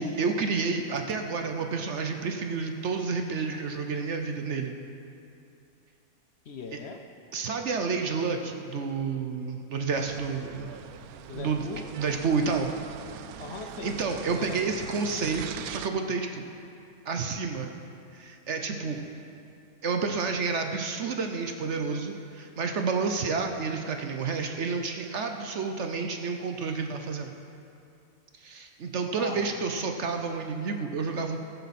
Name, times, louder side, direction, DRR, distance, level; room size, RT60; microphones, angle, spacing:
voice 1, 0.0-4.7 7.3-10.7 11.3-11.6 12.0-12.7 13.8-16.4 17.0-17.7 18.1-19.0 19.8-27.3 28.4-31.4, right 4 dB, 55° right, 4 dB, 1.0 m, -30 dB
voice 2, 6.4-7.0 11.3-11.9 13.4-15.3 18.6-19.2 29.2-29.6, left 4 dB, 55° left, 5 dB, 0.9 m, -41 dB
sound 1, 9.9-15.9, right 9 dB, 80° right, 1.1 m, -42 dB
14.0 x 13.5 x 4.2 m, 2.6 s
omnidirectional pair, 1.6 m